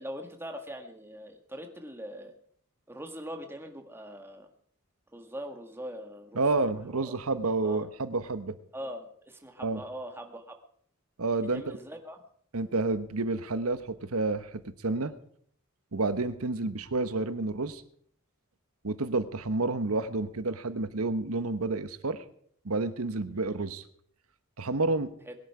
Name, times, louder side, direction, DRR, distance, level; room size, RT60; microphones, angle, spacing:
voice 1, 0.0-2.3 2.9-4.5 5.1-7.2 7.6-7.8 8.7-10.5 11.5-12.2 25.3-25.4, equal, 10° right, 4 dB, 1.8 m, -42 dB
voice 2, 6.3-8.5 9.6-9.8 11.2-11.8 12.5-15.1 15.9-17.8 18.8-22.2 22.6-23.8 24.6-25.1, right 3 dB, 90° right, 12 dB, 1.1 m, -30 dB
22.5 x 10.5 x 4.9 m, 0.63 s
head